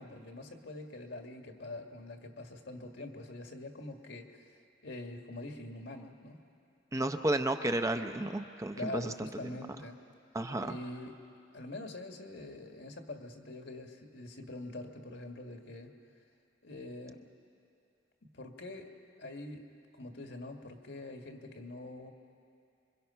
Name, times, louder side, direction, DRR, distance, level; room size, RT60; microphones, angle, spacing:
voice 1, 0.0-4.5 4.8-6.4 8.7-10.0 10.6-11.2 11.5-15.9 16.6-17.3 18.3-18.9 19.2-19.6 20.0-22.1, left 2 dB, 75° left, 4 dB, 1.8 m, -44 dB
voice 2, 6.9-9.3 10.3-10.8, right 1 dB, 20° right, 8 dB, 0.7 m, -32 dB
26.5 x 24.0 x 5.7 m, 2.5 s
head